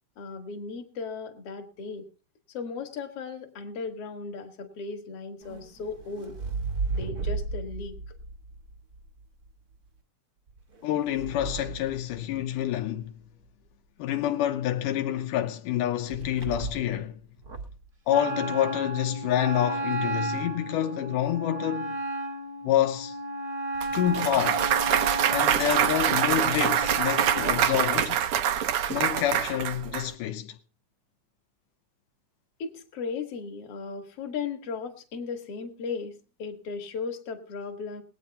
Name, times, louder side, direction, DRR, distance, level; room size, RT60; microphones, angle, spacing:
voice 1, 0.2-2.0 2.5-6.4 6.9-8.0 32.6-38.0, left 5 dB, 50° left, 2.4 m, -36 dB
sound 1, 5.4-9.5 10.5-12.8 16.1-17.0 17.4-17.9, right 4 dB, 50° right, 1.2 m, -35 dB
voice 2, 10.8-13.1 14.0-17.2 18.1-22.0 22.6-23.2 23.9-24.7 25.3-28.3 28.9-30.6, left 12 dB, 85° left, 2.4 m, -28 dB
Wind instrument woodwind instrument, 18.1-27.7, right 2 dB, 25° right, 1.1 m, -33 dB
Clapping / Cheering / Applause, 23.8-30.0, right 9 dB, 70° right, 1.3 m, -25 dB
21.0 x 8.9 x 4.1 m
omnidirectional pair, 3.6 m